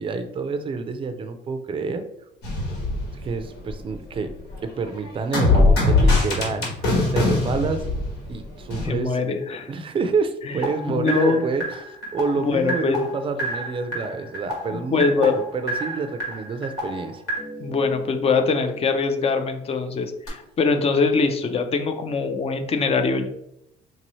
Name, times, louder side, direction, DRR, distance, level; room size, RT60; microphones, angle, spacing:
voice 1, 0.0-2.0 3.2-4.3 4.6-7.9 8.3-9.2 9.7-17.2, right 4 dB, 30° right, 8 dB, 0.4 m, -28 dB
sound 1, 2.4-3.9 4.2-8.9 10.6-18.5 20.3-20.4, left 2 dB, 90° left, 1.4 m, -24 dB
voice 2, 8.8-9.7 10.9-11.4 12.4-13.0 14.7-15.4 17.6-23.3, left 4 dB, 35° left, 7 dB, 0.5 m, -23 dB
3.8 x 2.7 x 3.0 m, 0.79 s
cardioid pair, 110°, 17 cm